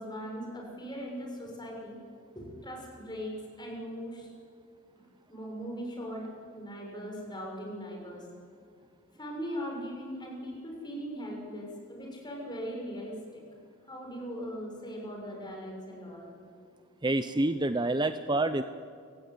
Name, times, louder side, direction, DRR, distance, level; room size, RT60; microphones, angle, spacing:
voice 1, 0.0-2.0 2.3-4.3 5.3-8.3 9.2-13.4 13.8-16.3, equal, 20° left, -1 dB, 6.7 m, -39 dB
voice 2, 17.0-18.6, right 2 dB, 20° right, 10 dB, 0.7 m, -27 dB
29.0 x 17.0 x 9.7 m, 2.3 s
head